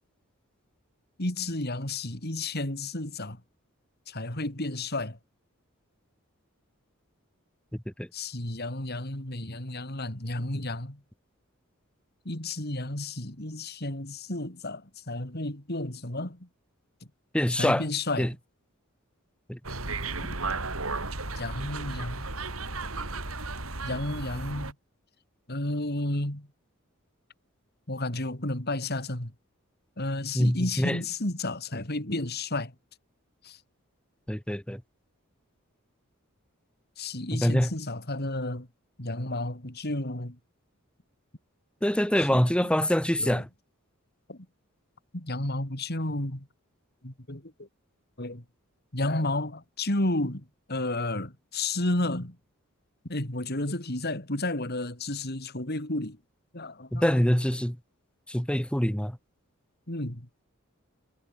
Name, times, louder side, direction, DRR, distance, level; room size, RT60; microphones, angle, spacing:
voice 1, 1.2-3.4 4.1-5.2 8.1-11.0 12.3-16.5 17.5-18.4 21.3-22.3 23.8-24.7 25.5-26.5 27.9-29.3 30.0-32.7 33.4-33.6 37.0-38.7 39.0-40.4 42.3-42.5 43.2-43.4 44.3-44.5 45.1-46.5 47.0-47.7 48.2-48.4 48.9-52.4 53.0-56.2 56.5-57.2 59.9-60.3, left 2 dB, 50° left, 3.8 m, -32 dB
voice 2, 7.7-8.1 17.3-17.8 18.2-18.3 19.5-19.6 30.3-31.0 34.3-34.8 37.3-37.7 41.8-43.4 56.9-57.8 58.3-59.2, equal, 5° left, 1.3 m, -25 dB
sound 1, 19.6-24.7, right 3 dB, 90° right, 5.6 m, -34 dB
head